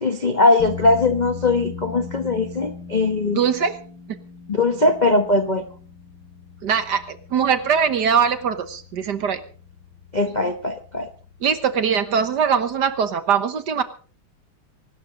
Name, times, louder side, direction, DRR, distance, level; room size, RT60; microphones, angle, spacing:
voice 1, 0.0-3.4 4.5-5.7 10.1-11.1, left 2 dB, 35° left, 7 dB, 0.7 m, -20 dB
sound 1, 0.6-13.1, left 5 dB, 75° left, 6.6 m, -40 dB
voice 2, 3.3-3.8 6.6-9.4 11.4-13.8, right 7 dB, 60° right, 12 dB, 1.6 m, -21 dB
24.0 x 12.0 x 3.9 m, 0.41 s
omnidirectional pair, 2.3 m